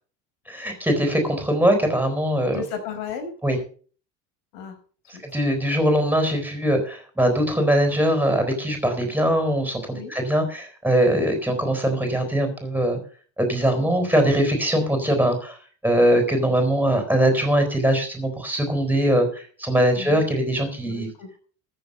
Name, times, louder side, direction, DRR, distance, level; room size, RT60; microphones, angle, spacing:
voice 1, 0.5-2.6 3.4-3.6 5.1-13.0 13.4-15.6 15.8-21.1, right 1 dB, 5° right, 4 dB, 4.1 m, -21 dB
voice 2, 2.5-3.3 4.5-4.8 9.9-10.1 19.9-20.2 20.8-21.4, left 6 dB, 75° left, 5 dB, 5.1 m, -34 dB
14.5 x 7.3 x 6.5 m, 0.42 s
cardioid pair, 135°, 43 cm